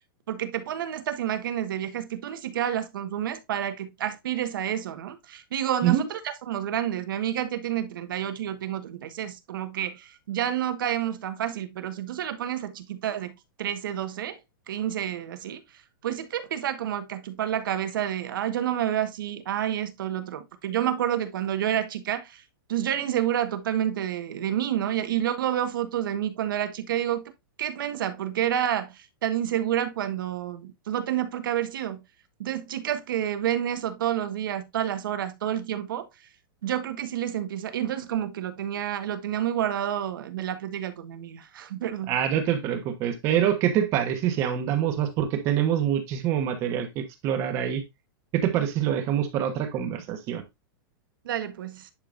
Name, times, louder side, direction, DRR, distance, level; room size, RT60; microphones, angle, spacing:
voice 1, 0.3-14.4 14.7-15.6 16.0-22.4 22.7-27.3 27.6-32.0 32.4-36.1 36.6-42.1 51.2-51.9, right 11 dB, 65° right, 1.4 m, -29 dB
voice 2, 42.1-47.8 48.3-50.4, right 10 dB, 25° right, 1.1 m, -25 dB
10.0 x 4.9 x 2.6 m
supercardioid pair, 175°, 12 cm